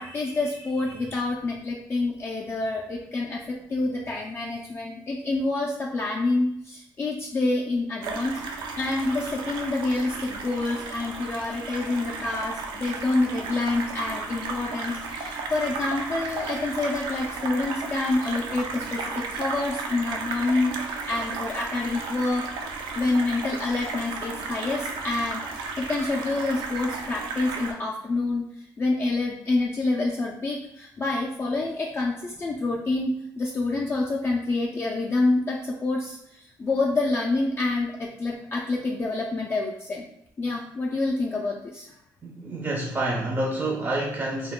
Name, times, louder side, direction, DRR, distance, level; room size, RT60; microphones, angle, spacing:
voice 1, 0.0-8.4 8.8-22.5 22.9-28.5 28.8-40.0 40.4-41.9, left 2 dB, 30° left, -3 dB, 0.4 m, -27 dB
sound 1, 8.0-27.7, right 4 dB, 80° right, 0.4 m, -34 dB
voice 2, 42.2-44.5, right 2 dB, 25° right, -1 dB, 0.5 m, -28 dB
2.2 x 2.2 x 3.6 m, 0.75 s
cardioid pair, 85°, 8 cm